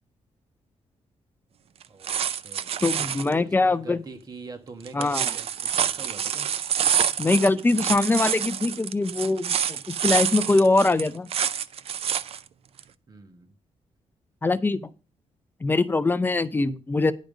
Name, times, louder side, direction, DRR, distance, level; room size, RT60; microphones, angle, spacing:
sound 1, 1.8-3.3 4.9-12.4 12.8-12.9, right 8 dB, 55° right, 0.5 m, -27 dB
voice 1, 1.9-2.8 3.2-6.5 13.1-13.5, right 4 dB, 30° right, 7 dB, 1.2 m, -44 dB
voice 2, 2.8-4.0 4.9-5.2 7.2-11.3 14.4-14.9 15.6-17.1, left 3 dB, 15° left, 13 dB, 0.4 m, -22 dB
10.5 x 5.2 x 6.2 m, 0.35 s
wide cardioid pair, 175°, 12 cm